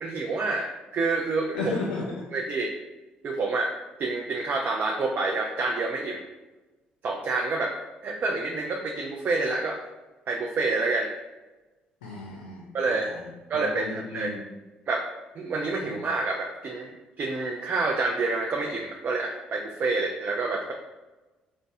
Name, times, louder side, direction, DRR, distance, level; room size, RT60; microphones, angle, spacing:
voice 1, 0.0-1.6 2.3-2.7 3.2-3.7 4.0-6.2 7.0-7.7 8.0-9.8 10.3-11.1 12.7-13.1 13.5-14.3 14.9-15.0 15.4-16.9 17.2-20.7, right 3 dB, 45° right, 1 dB, 0.4 m, -28 dB
voice 2, 1.5-2.2 12.0-14.4 15.8-16.0, left 3 dB, 80° left, -3 dB, 0.4 m, -34 dB
4.0 x 2.1 x 2.5 m, 1.1 s
hypercardioid pair, 50°, 4 cm